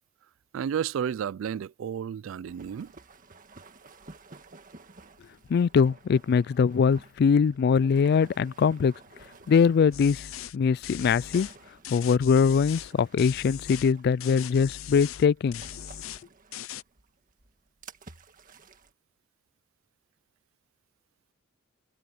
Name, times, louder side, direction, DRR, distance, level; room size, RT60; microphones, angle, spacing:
voice 1, 0.5-2.9, right 8 dB, 75° right, 0.3 m, -32 dB
sound 1, 2.5-18.9, right 3 dB, 40° right, 1.7 m, -53 dB
voice 2, 5.5-8.9 9.5-10.3 10.5-11.5 11.9-15.6, left 6 dB, 50° left, 0.3 m, -22 dB
sound 2, 9.9-10.6 10.8-11.6 11.8-12.9 13.2-13.9 14.2-15.3 15.5-16.2 16.5-16.8, left 10 dB, 90° left, 0.6 m, -40 dB
head